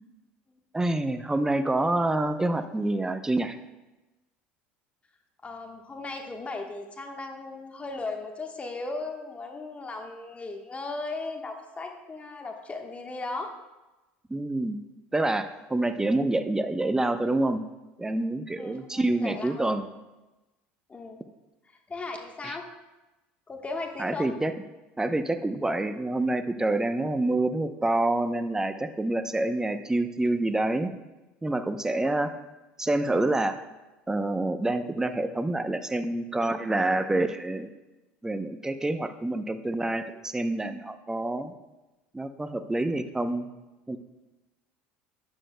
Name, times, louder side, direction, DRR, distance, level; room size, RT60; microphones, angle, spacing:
voice 1, 0.7-3.6 14.3-14.8 15.1-17.6 18.0-19.9 22.4-22.6 24.0-24.5 25.0-30.9 31.4-32.3 32.8-33.6 34.1-37.7 38.2-41.5 42.1-43.5 43.9-44.0, right 2 dB, 10° right, 9 dB, 0.7 m, -27 dB
voice 2, 5.4-13.5 15.8-15.9 18.6-19.7 20.9-21.2 21.9-22.7 23.5-24.3 31.8-32.3, left 3 dB, 25° left, 3 dB, 1.2 m, -37 dB
14.0 x 10.0 x 2.2 m, 1.1 s
hypercardioid pair, 85°, 6 cm